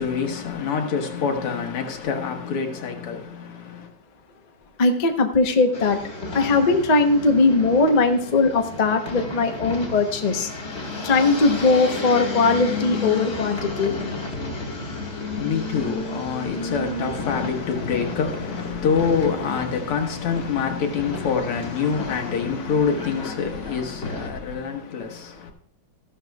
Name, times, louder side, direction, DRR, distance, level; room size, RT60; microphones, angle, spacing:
voice 1, 0.0-3.9 15.3-25.5, left 6 dB, 85° left, 2.3 m, -26 dB
voice 2, 4.8-6.0 6.3-10.5 11.0-14.0, left 3 dB, 60° left, 0.4 m, -19 dB
sound 1, 5.7-24.3, left 3 dB, 30° left, 1.9 m, -32 dB
15.0 x 11.5 x 2.3 m
omnidirectional pair, 2.4 m